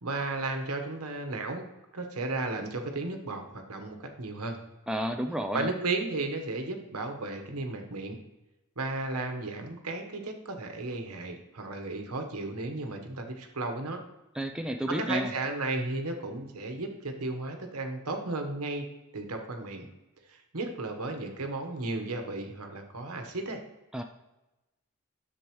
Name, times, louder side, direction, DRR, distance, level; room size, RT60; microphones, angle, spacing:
voice 1, 0.0-1.7 1.9-4.6 5.5-8.2 8.8-14.0 14.9-18.8 19.1-19.9 20.3-23.6, right 2 dB, 90° right, 4 dB, 1.2 m, -34 dB
voice 2, 4.9-5.7 14.4-15.3 23.9-24.0, equal, 5° right, 4 dB, 0.4 m, -31 dB
10.5 x 7.0 x 3.1 m, 1.0 s
head